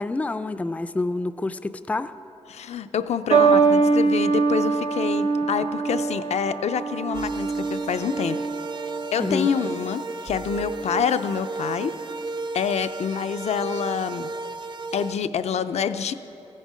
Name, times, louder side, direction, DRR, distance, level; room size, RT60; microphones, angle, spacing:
voice 1, 0.0-2.1 9.2-9.5, left 2 dB, 15° left, 13 dB, 0.3 m, -27 dB
voice 2, 2.5-8.4 9.1-11.9 12.5-14.3 14.9-16.1, left 7 dB, 80° left, 10 dB, 0.5 m, -27 dB
sound 1, 3.3-9.8 10.7-11.1, right 4 dB, 90° right, 0.8 m, -23 dB
sound 2, 7.1-15.1, right 3 dB, 45° right, 0.5 m, -34 dB
15.0 x 11.0 x 5.0 m, 2.9 s
wide cardioid pair, 110°, 11 cm